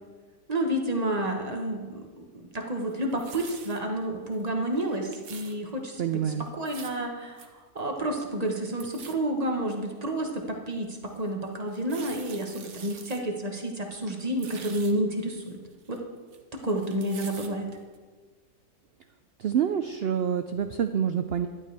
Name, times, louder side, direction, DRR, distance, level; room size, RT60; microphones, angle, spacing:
voice 1, 0.5-6.0 6.4-7.4 7.7-15.6 15.9-16.0 16.5-17.7, right 1 dB, 30° right, 2 dB, 1.2 m, -30 dB
sound 1, 2.8-3.8 4.3-4.5 4.7-5.5 6.5-7.0 7.4-7.5 7.8-7.9 8.1-8.5 8.8-9.1 9.7-9.8 10.4-10.5 11.6-13.2 13.6-13.7 14.0-14.9 15.4-16.4 16.6-17.5 17.9-18.0, right 6 dB, 55° right, 1.1 m, -46 dB
voice 2, 6.0-6.5 19.4-21.5, right 8 dB, 90° right, 8 dB, 0.5 m, -27 dB
11.5 x 11.0 x 3.4 m, 1.4 s
omnidirectional pair, 1.6 m